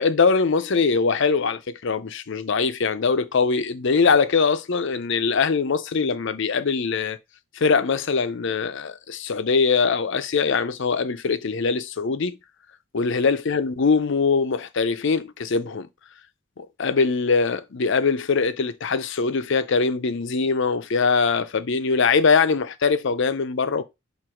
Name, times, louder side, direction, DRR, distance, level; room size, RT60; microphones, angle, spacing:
voice 1, 0.0-7.2 7.5-12.4 12.9-15.9 16.6-23.8, left 5 dB, 60° left, 0.6 m, -22 dB
7.6 x 2.6 x 4.9 m
head